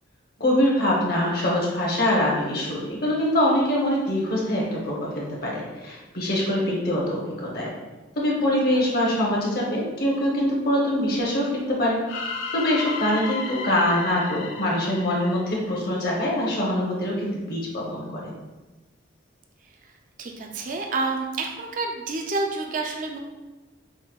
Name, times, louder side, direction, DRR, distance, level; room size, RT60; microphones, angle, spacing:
voice 1, 0.4-7.7 8.2-12.0 12.5-18.3, left 1 dB, 50° left, -3 dB, 0.8 m, -24 dB
sound 1, 12.1-16.1, left 4 dB, 85° left, 0.4 m, -34 dB
voice 2, 20.2-23.2, right 3 dB, 45° right, 2 dB, 0.3 m, -29 dB
5.2 x 2.1 x 2.3 m, 1.2 s
head